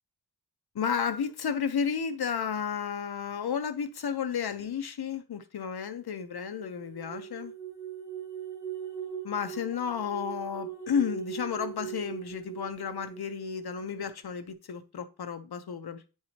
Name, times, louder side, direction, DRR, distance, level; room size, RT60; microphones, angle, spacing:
voice 1, 0.7-7.5 9.2-16.1, left 7 dB, 65° left, 1.0 m, -32 dB
sound 1, 6.2-14.0, right 9 dB, 5° right, 1.1 m, -41 dB
9.5 x 4.9 x 2.9 m
wide cardioid pair, 125°, 41 cm